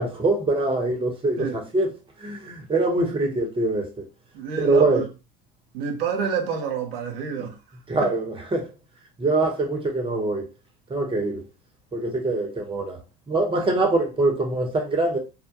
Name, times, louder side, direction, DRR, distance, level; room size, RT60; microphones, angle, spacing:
voice 1, 0.0-1.9 2.2-4.0 4.6-5.0 7.4-7.5 7.9-8.7 9.2-10.5 10.9-11.4 11.9-13.0 13.3-15.2, right 2 dB, 20° right, 0.8 m, -23 dB
voice 2, 4.3-5.1 5.7-7.6 8.0-8.1 11.2-11.3, right 6 dB, 90° right, 0.5 m, -28 dB
2.3 x 2.1 x 2.7 m
hypercardioid pair, 80°, 29 cm